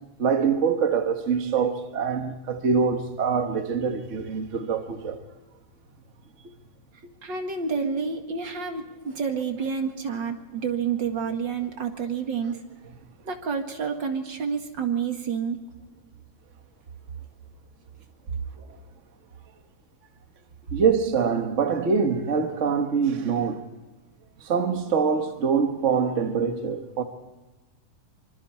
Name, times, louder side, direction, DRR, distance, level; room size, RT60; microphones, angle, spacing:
voice 1, 0.2-5.2 20.7-23.7 24.4-27.0, right 6 dB, 75° right, 0.6 m, -24 dB
voice 2, 7.2-12.6 13.3-15.6, right 6 dB, 40° right, 2.1 m, -29 dB
25.5 x 25.0 x 4.3 m
omnidirectional pair, 3.6 m